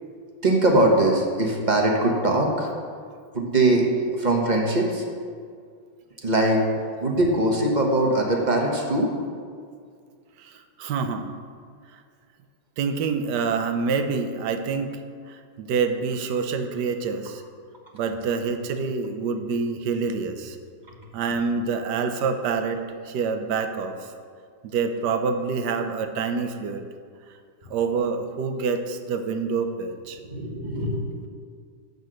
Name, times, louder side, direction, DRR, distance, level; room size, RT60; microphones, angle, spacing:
voice 1, 0.4-2.7 3.3-3.9 4.1-5.0 6.2-6.6 7.0-9.1 30.2-31.0, right 1 dB, 25° right, 0 dB, 1.1 m, -21 dB
voice 2, 10.4-11.3 11.9-12.0 12.8-15.0 15.3-17.4 17.9-20.6 21.1-24.1 24.6-26.8 27.7-30.2, right 5 dB, 70° right, 7 dB, 1.3 m, -27 dB
12.0 x 4.1 x 7.7 m, 2.1 s
omnidirectional pair, 2.0 m